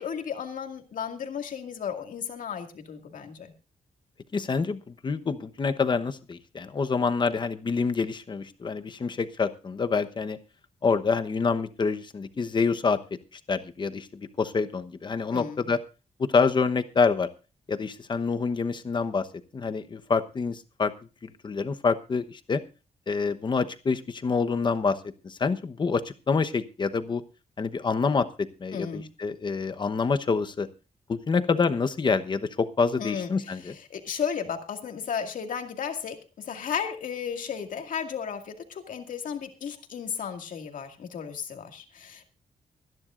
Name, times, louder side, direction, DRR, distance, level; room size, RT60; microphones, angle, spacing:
voice 1, 0.0-3.5 15.3-15.7 28.7-29.1 33.0-42.2, left 7 dB, 75° left, 5 dB, 2.2 m, -34 dB
voice 2, 4.3-10.4 10.8-13.0 13.5-15.8 16.2-17.3 17.7-19.3 19.5-20.9 21.2-22.6 23.1-25.0 25.2-27.2 27.6-28.3 28.6-30.7 31.1-33.7, left 4 dB, 35° left, 9 dB, 1.0 m, -27 dB
24.5 x 10.5 x 2.5 m, 0.32 s
wide cardioid pair, 145°, 14 cm